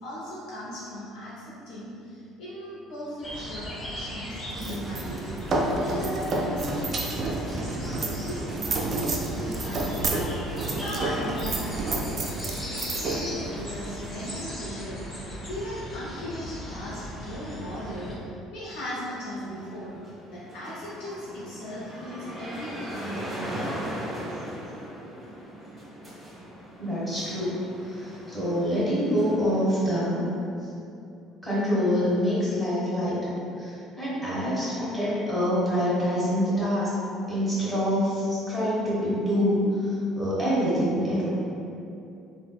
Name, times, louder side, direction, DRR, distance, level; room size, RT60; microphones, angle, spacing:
voice 1, 0.0-5.3 5.7-7.7 8.0-9.1 9.4-15.0 15.5-18.2 18.5-20.0 20.3-23.4, equal, 65° left, -8 dB, 0.5 m, -37 dB
sound 1, 3.2-18.1, equal, 25° left, 0.7 m, -38 dB
sound 2, 4.5-14.5, right 2 dB, 45° right, 0.3 m, -30 dB
sound 3, 19.4-29.8, equal, 10° right, 1.0 m, -39 dB
voice 2, 26.8-27.6 27.9-30.2 31.4-36.9 37.3-41.3, equal, 10° left, -10 dB, 1.5 m, -26 dB
3.3 x 2.0 x 2.2 m, 2.6 s
hypercardioid pair, 60°, 0 cm